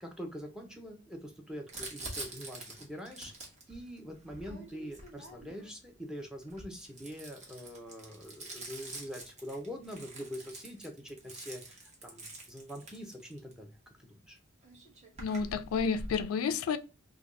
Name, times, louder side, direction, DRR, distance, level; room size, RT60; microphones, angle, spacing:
voice 1, 0.0-3.3 3.7-13.7 14.1-14.4, equal, 5° right, 0.6 m, -44 dB
Crumpling crinkling, 1.7-5.7 6.4-13.5 14.4-14.5 14.6-16.2, right 2 dB, 35° right, 1.0 m, -46 dB
voice 2, 15.2-16.8, left 5 dB, 85° left, 0.3 m, -30 dB
3.3 x 2.2 x 3.6 m
head